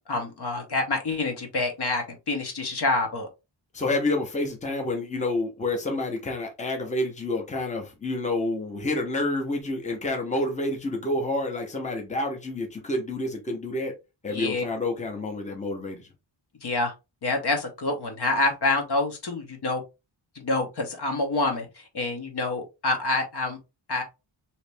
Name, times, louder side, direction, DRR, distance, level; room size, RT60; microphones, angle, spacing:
voice 1, 0.0-3.3 14.3-14.6 16.6-16.9 17.2-19.8 20.3-23.6 23.9-24.0, left 2 dB, 55° left, 1.0 m, -27 dB
voice 2, 3.7-13.9 14.2-16.1, left 2 dB, 15° left, 0.8 m, -28 dB
3.2 x 2.9 x 3.3 m
wide cardioid pair, 160°, 46 cm